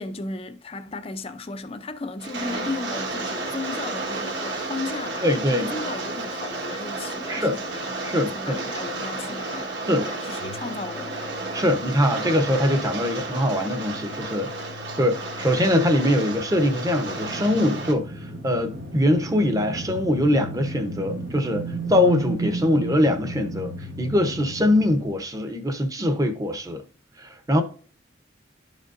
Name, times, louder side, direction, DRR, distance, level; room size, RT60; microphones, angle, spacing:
voice 1, 0.0-9.7 10.0-11.3 11.6-11.7, left 3 dB, 30° left, 0.5 m, -35 dB
Rain, 2.2-17.9, right 2 dB, 60° right, 1.5 m, -32 dB
voice 2, 5.2-5.7 7.3-7.5 8.0-8.6 9.9-10.1 11.5-26.8 27.2-27.6, left 1 dB, 15° right, 0.8 m, -23 dB
sound 1, 10.3-22.2, left 6 dB, 60° left, 0.8 m, -44 dB
sound 2, 17.1-25.1, right 3 dB, 80° right, 1.4 m, -34 dB
11.5 x 5.1 x 2.6 m
head